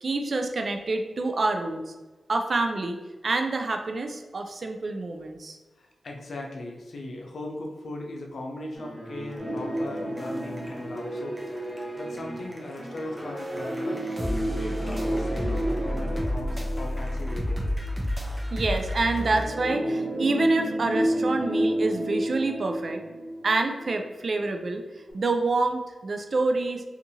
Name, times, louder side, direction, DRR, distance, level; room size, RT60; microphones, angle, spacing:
voice 1, 0.0-1.9 2.3-3.0 3.2-5.6 18.5-23.0 23.4-26.8, right 3 dB, 60° right, 5 dB, 0.4 m, -27 dB
voice 2, 5.8-17.6, left 1 dB, 75° left, 1 dB, 0.5 m, -39 dB
sound 1, 8.7-16.0, right 1 dB, 25° left, 1.2 m, -38 dB
sound 2, 9.3-19.5, equal, 15° right, 0.6 m, -33 dB
sound 3, 9.4-12.1 13.5-17.9 19.1-24.1 24.4-24.5 25.1-25.2, right 1 dB, 45° right, 0.9 m, -31 dB
2.6 x 2.5 x 2.7 m, 1.2 s
cardioid pair, 50°, 0 cm